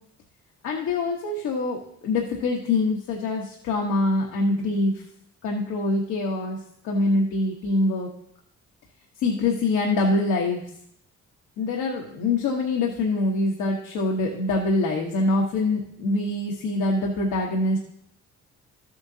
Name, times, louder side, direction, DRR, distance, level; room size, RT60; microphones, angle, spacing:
voice 1, 0.6-5.0 5.4-6.6 6.8-8.1 9.2-10.6 11.6-17.8, left 2 dB, 85° left, -1 dB, 1.2 m, -24 dB
12.5 x 7.9 x 2.8 m, 0.72 s
cardioid pair, 90°, 30 cm